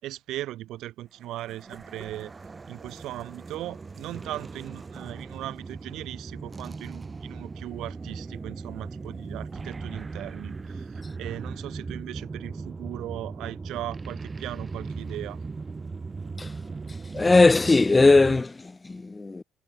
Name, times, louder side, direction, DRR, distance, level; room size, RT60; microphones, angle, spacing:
voice 1, 0.0-2.3 2.7-15.4, right 14 dB, 75° right, 4.1 m, -38 dB
sound 1, 1.2-18.4, right 4 dB, 25° right, 5.2 m, -38 dB
voice 2, 17.1-19.4, left 3 dB, 20° left, 0.6 m, -19 dB
cardioid pair, 100°, 0 cm